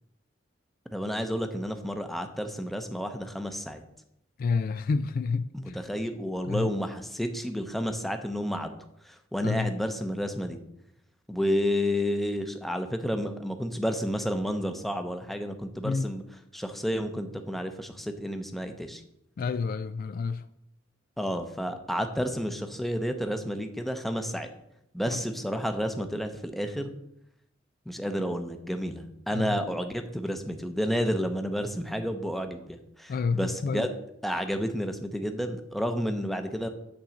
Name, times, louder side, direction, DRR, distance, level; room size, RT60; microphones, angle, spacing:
voice 1, 0.9-3.8 5.5-8.8 9.0-10.6 11.3-16.2 16.5-19.0 21.2-24.5 24.9-26.9 27.9-33.9 34.2-36.7, equal, ahead, 0.7 m, -31 dB
voice 2, 4.4-5.8 6.4-6.7 9.4-9.7 15.8-16.1 19.4-20.4 25.1-25.2 29.3-29.6 33.1-33.9, left 4 dB, 45° left, 0.3 m, -29 dB
8.9 x 3.8 x 7.0 m
head